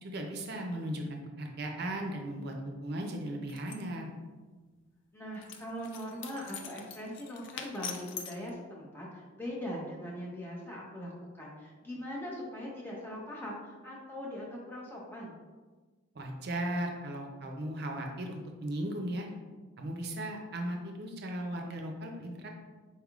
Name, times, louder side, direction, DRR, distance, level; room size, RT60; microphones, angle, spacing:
voice 1, 0.0-4.1 16.1-19.3 19.8-22.5, right 1 dB, 50° right, 2 dB, 0.5 m, -37 dB
sound 1, 3.5-3.8 5.4-8.5, left 6 dB, 60° left, 0.4 m, -43 dB
voice 2, 5.1-15.3, equal, 10° left, -4 dB, 0.7 m, -41 dB
4.3 x 3.4 x 2.4 m, 1.3 s
head